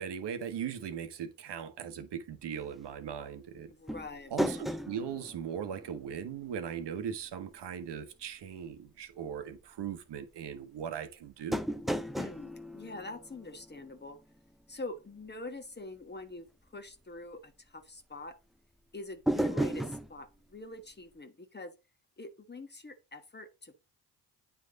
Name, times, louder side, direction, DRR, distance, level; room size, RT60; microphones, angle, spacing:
voice 1, 0.0-3.7 4.3-11.6, right 8 dB, 60° right, 1.1 m, -39 dB
voice 2, 3.7-4.3 12.1-14.2 14.7-16.5 16.7-18.3 18.9-21.7 22.2-23.8, left 2 dB, 20° left, 1.2 m, -44 dB
sound 1, 3.9-6.5 6.8-6.9 11.5-14.0 19.3-20.1, right 1 dB, ahead, 0.5 m, -34 dB
8.8 x 3.3 x 3.9 m
hypercardioid pair, 50°, 47 cm